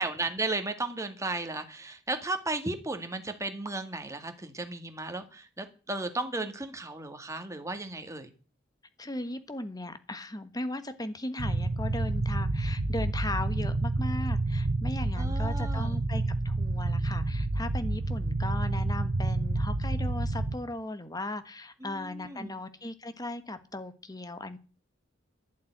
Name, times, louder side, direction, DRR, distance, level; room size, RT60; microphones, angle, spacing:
voice 1, 0.0-8.3 15.2-16.0 21.8-22.5, right 2 dB, 15° right, 6 dB, 1.9 m, -35 dB
voice 2, 9.0-24.6, left 1 dB, 20° left, 10 dB, 1.4 m, -37 dB
sound 1, 11.4-20.6, right 2 dB, 75° right, 1.2 m, -29 dB
12.0 x 7.3 x 10.0 m, 0.35 s
head